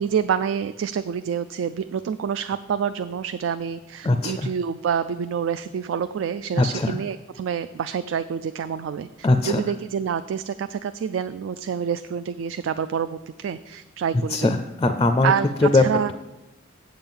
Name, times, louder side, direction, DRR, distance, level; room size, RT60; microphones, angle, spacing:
voice 1, 0.0-14.5 15.2-16.1, right 7 dB, 80° right, 12 dB, 0.3 m, -27 dB
voice 2, 4.0-4.5 6.5-7.0 9.2-9.6 14.1-15.3 15.6-15.8, left 2 dB, 25° left, 8 dB, 0.4 m, -20 dB
7.7 x 7.3 x 5.5 m, 1.0 s
head